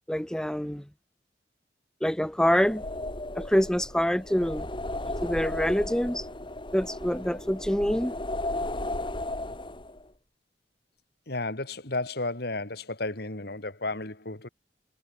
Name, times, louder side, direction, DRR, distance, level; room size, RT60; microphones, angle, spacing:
voice 1, 0.1-0.8 2.0-2.8 3.3-4.7 5.2-6.3 6.7-8.2, equal, 5° left, 0.7 m, -26 dB
sound 1, 2.5-10.1, left 1 dB, 30° left, 4.4 m, -35 dB
voice 2, 11.3-14.5, left 2 dB, 60° left, 2.9 m, -33 dB
head